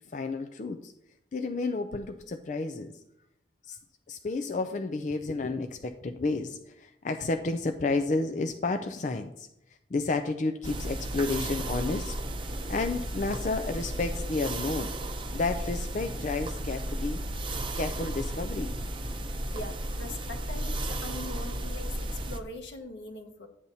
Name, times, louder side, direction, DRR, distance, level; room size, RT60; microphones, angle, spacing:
voice 1, 0.1-0.9 1.3-3.0 3.7-3.8 4.1-12.2 12.7-14.9 15.3-17.2 17.8-18.7, left 3 dB, 40° left, 7 dB, 0.4 m, -31 dB
sound 1, 10.6-22.4, right 1 dB, 25° right, 0.6 m, -34 dB
voice 2, 19.5-23.5, left 2 dB, 80° left, 3 dB, 1.2 m, -41 dB
11.5 x 8.6 x 2.7 m, 0.81 s
head